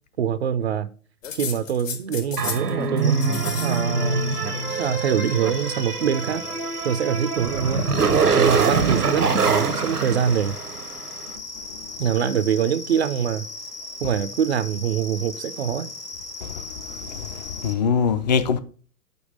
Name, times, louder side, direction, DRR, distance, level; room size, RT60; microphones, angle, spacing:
voice 1, 0.2-0.9 1.3-4.3 4.8-6.4 6.8-7.9 8.3-10.6 12.0-13.5 14.0-15.9, right 8 dB, 45° right, 0.4 m, -24 dB
sound 1, 1.2-2.7 3.0-3.8 4.1-4.9 6.0-6.7, left 7 dB, 55° left, 1.3 m, -35 dB
sound 2, 2.4-11.1, right 5 dB, 85° right, 0.9 m, -24 dB
sound 3, 3.0-17.8, left 3 dB, 85° left, 1.3 m, -37 dB
voice 2, 17.1-18.6, left 6 dB, 30° left, 0.4 m, -23 dB
5.3 x 4.6 x 6.3 m
figure-of-eight pair, 115°, 45 cm